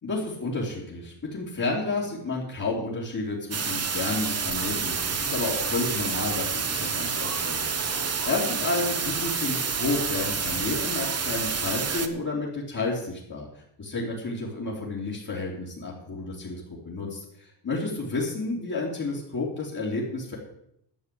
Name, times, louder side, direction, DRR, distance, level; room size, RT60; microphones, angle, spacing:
voice 1, 0.0-20.4, left 3 dB, 40° left, -6 dB, 3.3 m, -31 dB
sound 1, 3.5-12.1, right 5 dB, 35° right, 1.2 m, -28 dB
11.5 x 7.1 x 8.5 m, 0.75 s
cardioid pair, 100°, 45 cm